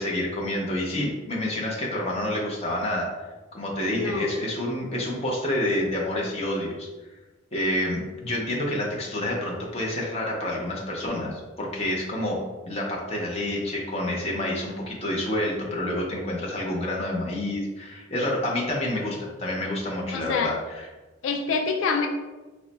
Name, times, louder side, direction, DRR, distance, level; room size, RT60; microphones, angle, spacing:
voice 1, 0.0-3.1 3.5-6.9 7.5-20.9, left 1 dB, 30° left, -2 dB, 0.7 m, -28 dB
voice 2, 3.8-4.3 20.1-20.5 21.2-22.1, left 4 dB, 85° left, 4 dB, 0.3 m, -26 dB
3.1 x 2.1 x 4.0 m, 1.2 s
head